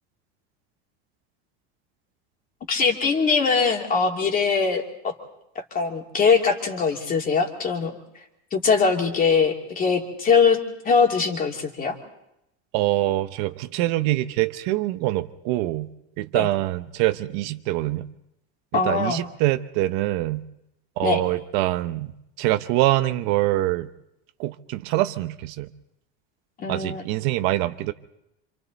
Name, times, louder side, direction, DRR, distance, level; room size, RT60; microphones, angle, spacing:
voice 1, 2.7-5.1 5.6-7.9 8.5-10.6 10.8-11.9 16.3-16.5 18.7-19.2 21.0-21.2 26.6-27.0, left 5 dB, 25° left, 2 dB, 2.6 m, -22 dB
voice 2, 12.7-15.9 16.2-18.1 18.7-20.4 21.0-22.1 22.4-23.9 24.4-25.7 26.7-27.9, right 17 dB, 60° right, 11 dB, 0.9 m, -24 dB
27.0 x 27.0 x 4.1 m, 0.82 s
cardioid pair, 160°, 32 cm